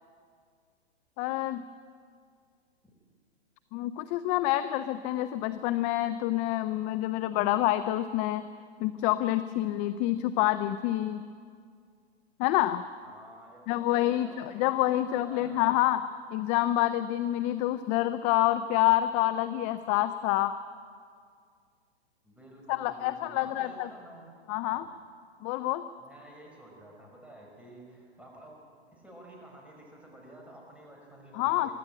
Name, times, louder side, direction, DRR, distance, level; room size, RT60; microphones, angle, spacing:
voice 1, 1.2-1.6 3.7-8.5 8.8-11.2 12.4-12.8 13.7-16.0 16.3-20.5 22.7-23.9 24.5-24.9 25.4-25.8 31.3-31.7, left 14 dB, 20° left, 12 dB, 0.4 m, -27 dB
voice 2, 13.0-14.6 15.0-15.8 22.2-24.3 24.7-24.9 26.0-28.5 28.9-31.7, right 1 dB, 5° right, -1 dB, 5.2 m, -51 dB
24.0 x 13.0 x 8.7 m, 2.1 s
hypercardioid pair, 120°, 33 cm